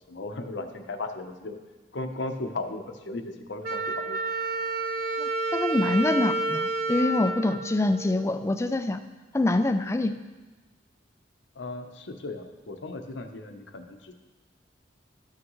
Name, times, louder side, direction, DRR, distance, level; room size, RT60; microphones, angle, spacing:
voice 1, 0.0-1.6 1.9-4.2 11.5-14.1, left 2 dB, 85° left, 6 dB, 0.8 m, -36 dB
Wind instrument woodwind instrument, 3.6-8.4, right 3 dB, 55° right, 0.5 m, -30 dB
voice 2, 5.2-9.0 9.3-10.2, left 2 dB, 15° left, 9 dB, 0.3 m, -25 dB
13.5 x 6.2 x 3.1 m, 1.2 s
head